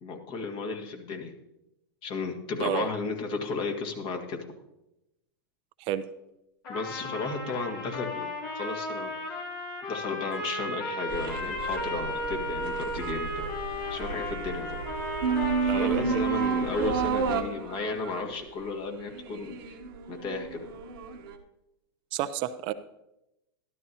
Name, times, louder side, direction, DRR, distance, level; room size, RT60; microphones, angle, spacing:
voice 1, 0.0-1.3 2.0-4.5 6.7-9.5 9.9-13.5 13.9-14.8 15.6-19.8 20.1-20.7, left 4 dB, 45° left, 3 dB, 2.0 m, -34 dB
Trumpet, 6.6-17.1, left 2 dB, 60° left, 2.8 m, -35 dB
sound 1, 11.1-21.3, right 6 dB, 65° right, 1.1 m, -32 dB
voice 2, 15.7-16.2 22.1-22.7, right 12 dB, 45° right, 12 dB, 0.5 m, -30 dB
12.5 x 12.5 x 2.8 m, 0.88 s
hypercardioid pair, 100°, 13 cm